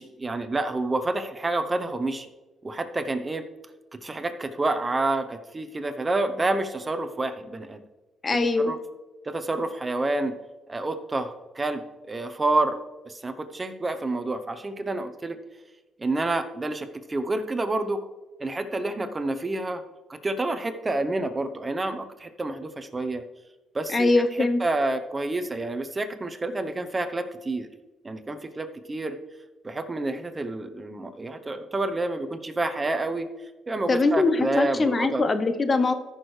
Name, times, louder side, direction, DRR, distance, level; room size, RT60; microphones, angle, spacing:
voice 1, 0.0-2.3 2.6-3.4 4.0-7.8 8.6-8.8 9.2-10.3 10.7-12.8 13.0-15.4 16.0-18.0 18.4-19.8 20.2-23.2 23.7-24.1 24.6-27.7 28.0-29.2 29.6-33.3 33.7-35.2, right 2 dB, 25° right, 9 dB, 0.8 m, -28 dB
voice 2, 8.2-8.7 23.9-24.6 33.9-35.9, left 3 dB, 35° left, 10 dB, 0.7 m, -22 dB
14.5 x 6.3 x 3.2 m, 1.2 s
cardioid pair, 90°, 0 cm